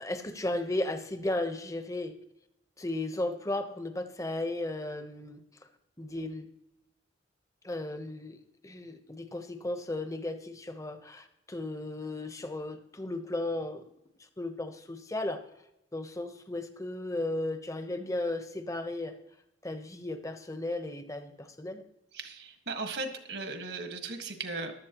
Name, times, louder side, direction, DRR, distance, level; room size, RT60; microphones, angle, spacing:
voice 1, 0.0-2.1 2.8-5.4 6.0-6.5 7.6-13.8 14.4-15.4 15.9-19.2 19.6-21.8, left 2 dB, 15° left, 8 dB, 0.9 m, -35 dB
voice 2, 22.1-24.7, right 3 dB, 65° right, 5 dB, 1.6 m, -37 dB
15.0 x 12.0 x 3.0 m, 0.84 s
head